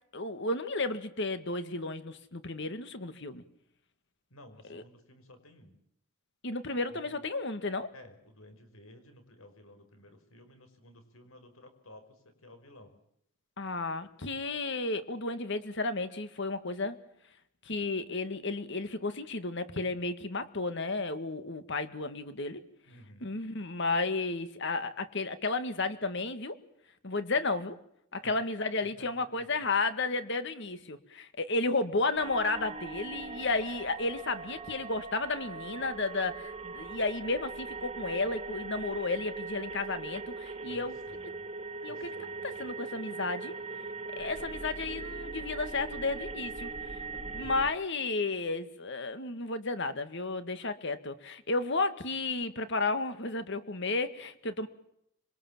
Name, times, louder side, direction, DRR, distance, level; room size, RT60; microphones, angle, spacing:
voice 1, 0.1-3.4 4.7-4.8 6.4-7.9 13.6-17.0 17.6-22.6 23.2-26.6 27.0-27.8 28.1-40.9 41.8-42.1 42.4-43.6 44.1-54.7, left 3 dB, 60° left, 10 dB, 2.0 m, -33 dB
voice 2, 4.3-5.8 6.9-7.1 7.9-13.0 22.9-23.3 28.2-28.3 29.0-29.1 29.4-29.5 40.6-41.5 41.8-42.7 47.4-47.5, left 1 dB, 80° left, 8 dB, 5.2 m, -54 dB
sound 1, 32.1-47.7, right 4 dB, 30° right, 1.9 m, -40 dB
26.5 x 23.0 x 7.4 m, 0.74 s
head